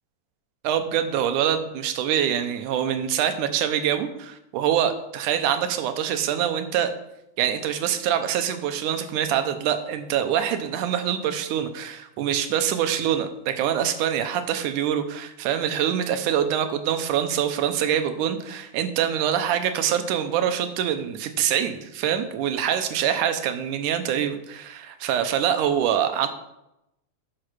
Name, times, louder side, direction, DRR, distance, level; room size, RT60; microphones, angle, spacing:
voice 1, 0.6-6.9 7.4-26.3, right 9 dB, 90° right, 8 dB, 2.4 m, -25 dB
9.9 x 5.5 x 6.1 m, 0.86 s
omnidirectional pair, 3.5 m